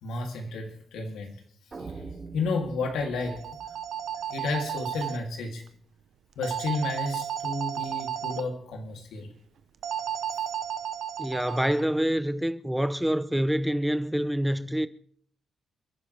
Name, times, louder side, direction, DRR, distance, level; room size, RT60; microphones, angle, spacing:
voice 1, 0.0-1.3 2.3-3.5 4.3-5.6 6.4-9.3, left 3 dB, 90° left, 3.0 m, -31 dB
sound 1, 1.7-4.8, right 4 dB, 35° right, 4.5 m, -44 dB
sound 2, 3.2-5.2 6.4-8.4 9.8-11.8, right 9 dB, 75° right, 0.8 m, -33 dB
voice 2, 11.2-14.9, equal, 5° right, 0.7 m, -26 dB
29.0 x 11.0 x 3.5 m
cardioid pair, 100°, 0 cm